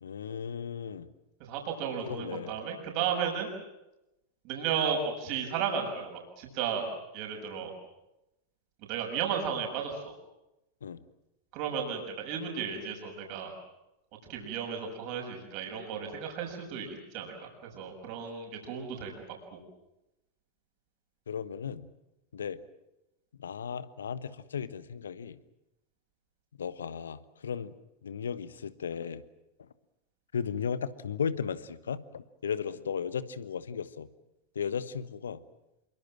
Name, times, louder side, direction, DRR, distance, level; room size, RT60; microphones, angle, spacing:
voice 1, 0.0-1.1 2.0-2.5 10.8-11.0 21.3-21.9 22.3-22.6 23.4-25.4 26.6-27.7 28.0-29.2 30.3-34.1 34.5-35.4, left 7 dB, 75° left, 15 dB, 1.3 m, -35 dB
voice 2, 1.5-3.5 4.4-6.8 7.1-7.7 8.9-10.1 11.5-13.5 14.3-17.3 17.7-19.1 19.5-19.6, right 7 dB, 50° right, 1 dB, 6.5 m, -34 dB
27.0 x 23.5 x 7.6 m, 0.92 s
figure-of-eight pair, 90°, 0 cm